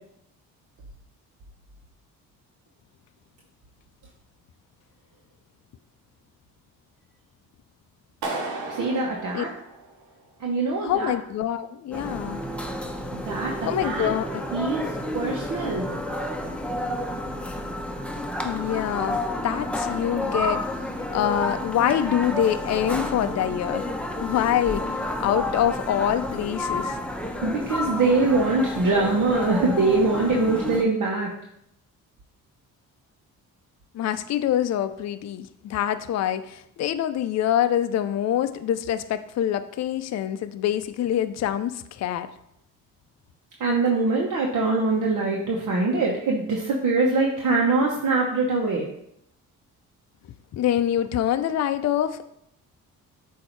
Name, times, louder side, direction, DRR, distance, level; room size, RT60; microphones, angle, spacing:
Clapping, 8.2-10.3, right 3 dB, 80° right, 1.2 m, -34 dB
voice 1, 8.7-9.5 10.4-11.1 13.1-14.1 14.5-15.9 27.4-31.3 43.6-48.9, right 3 dB, 55° right, -2 dB, 1.1 m, -23 dB
voice 2, 10.8-12.4 13.6-14.4 18.4-20.6 21.1-23.9 24.2-24.9 25.2-27.0 33.9-42.3 50.5-52.3, left 11 dB, 45° left, 11 dB, 0.5 m, -25 dB
sound 1, 11.9-30.8, left 1 dB, 5° left, 0.9 m, -30 dB
7.6 x 2.8 x 4.5 m, 0.75 s
supercardioid pair, 65°, 37 cm